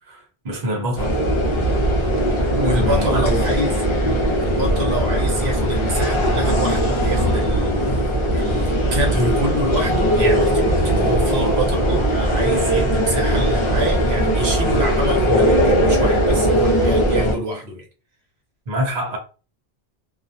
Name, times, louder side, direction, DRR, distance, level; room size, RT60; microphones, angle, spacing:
voice 1, 0.1-1.2 2.8-3.6 11.3-11.6 18.7-19.2, equal, 40° right, 0.8 m, -26 dB
sound 1, 1.0-17.3, equal, 35° left, 0.5 m, -19 dB
voice 2, 2.6-3.9 4.4-17.9, right 1 dB, 75° right, 1.0 m, -26 dB
2.4 x 2.1 x 2.5 m
omnidirectional pair, 1.1 m